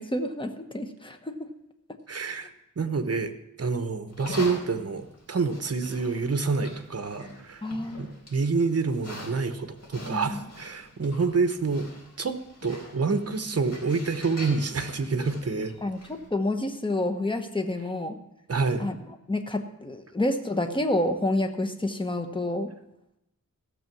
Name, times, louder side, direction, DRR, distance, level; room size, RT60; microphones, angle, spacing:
voice 1, 0.0-1.5 2.3-2.5 7.6-8.1 10.1-10.5 15.8-18.2 18.8-19.0 19.3-22.7, left 1 dB, 15° left, 6 dB, 1.1 m, -29 dB
voice 2, 2.1-3.3 3.6-7.7 8.0-11.9 12.2-15.7 18.5-18.9, right 4 dB, 50° right, 9 dB, 1.0 m, -27 dB
Livestock farm animals working animals, 4.1-16.3, left 1 dB, 55° left, 4.5 m, -44 dB
15.5 x 7.0 x 6.0 m, 0.90 s
wide cardioid pair, 95°, 32 cm